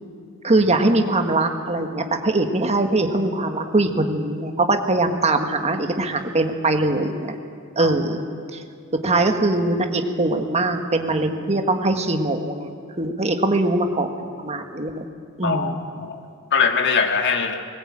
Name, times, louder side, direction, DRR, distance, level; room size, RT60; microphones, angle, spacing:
voice 1, 0.4-7.3 7.8-8.2 9.0-12.7 13.0-15.0 15.4-15.8, right 2 dB, 30° right, 5 dB, 1.6 m, -22 dB
voice 2, 15.4-16.2 16.5-17.6, left 5 dB, 55° left, 5 dB, 1.8 m, -22 dB
20.0 x 18.5 x 8.7 m, 2.3 s
head